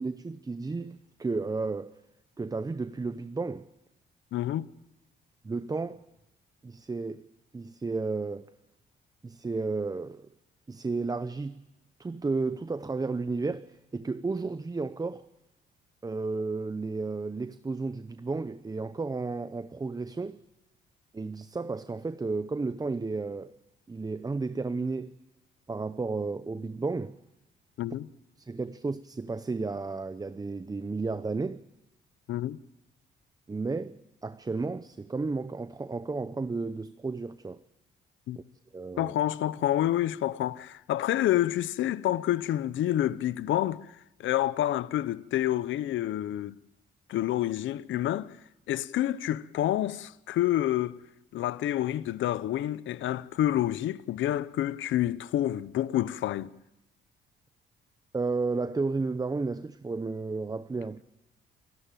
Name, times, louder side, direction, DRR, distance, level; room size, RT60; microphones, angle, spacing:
voice 1, 0.0-2.0 2.4-3.7 5.4-6.0 6.6-7.3 7.5-8.5 9.2-10.3 10.7-11.6 12.0-15.3 16.0-20.4 21.1-23.5 23.9-25.2 25.7-27.2 28.4-31.6 33.5-37.6 38.4-38.5 38.7-39.1 58.1-61.0, right 3 dB, 20° right, 0.7 m, -33 dB
voice 2, 4.3-4.7 27.8-28.1 32.3-32.6 38.3-38.4 39.0-43.9 44.2-46.6 47.1-48.3 48.7-51.0 51.3-56.5, left 13 dB, 75° left, 0.8 m, -28 dB
28.5 x 14.5 x 9.1 m
cardioid pair, 90°, 20 cm